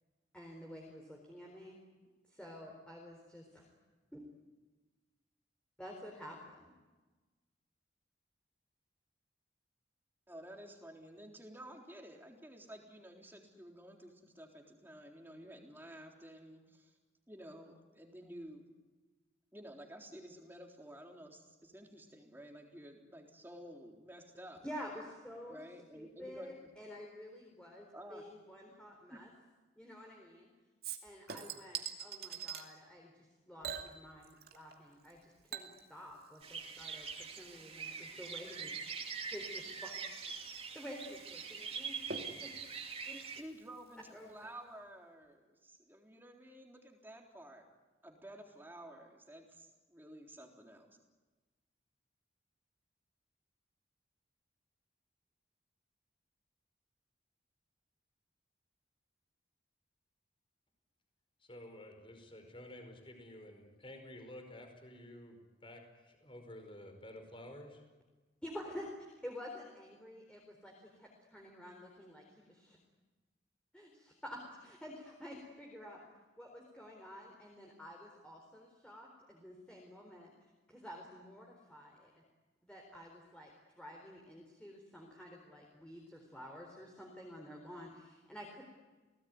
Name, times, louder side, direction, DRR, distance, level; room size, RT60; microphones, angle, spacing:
voice 1, 0.3-1.8 2.3-3.7 4.1-4.2 5.8-6.7 24.6-25.6 25.9-29.3 29.7-30.5 31.0-38.7 39.0-39.1 39.3-39.9 40.3-40.4 40.7-42.0 42.4-42.5 43.4-43.5 44.1-44.5 68.4-68.9 69.2-72.8 73.7-76.0 76.4-80.3 80.7-82.2 82.6-88.6, equal, 5° left, -1 dB, 4.1 m, -50 dB
voice 2, 10.3-16.9 17.3-18.6 19.5-24.6 25.5-26.5 27.9-28.2 29.1-29.2 43.0-47.7 48.0-51.0, right 1 dB, 10° right, 1 dB, 3.8 m, -52 dB
Chink clink / Liquid, 30.8-32.7 33.6-34.8 35.0-44.1 44.4-44.5, right 7 dB, 55° right, 2.6 m, -48 dB
sound 1, 36.4-43.4, right 5 dB, 30° right, 2.7 m, -44 dB
voice 3, 61.4-67.8, left 1 dB, 30° left, 5 dB, 5.1 m, -51 dB
30.0 x 19.0 x 9.6 m, 1.3 s
head